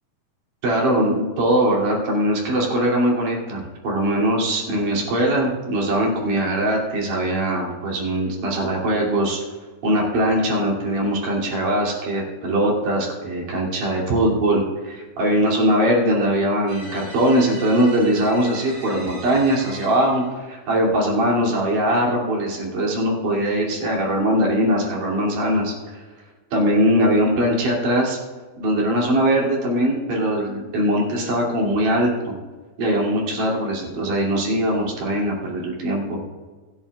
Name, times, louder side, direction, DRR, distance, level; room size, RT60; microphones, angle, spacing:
voice 1, 0.6-9.4 9.8-26.0 26.5-28.2 28.6-32.4 32.8-36.2, right 1 dB, 80° right, -2 dB, 4.1 m, -21 dB
sound 1, 16.7-20.4, right 1 dB, 40° right, 1.9 m, -40 dB
24.5 x 8.8 x 2.3 m, 1.4 s
omnidirectional pair, 3.6 m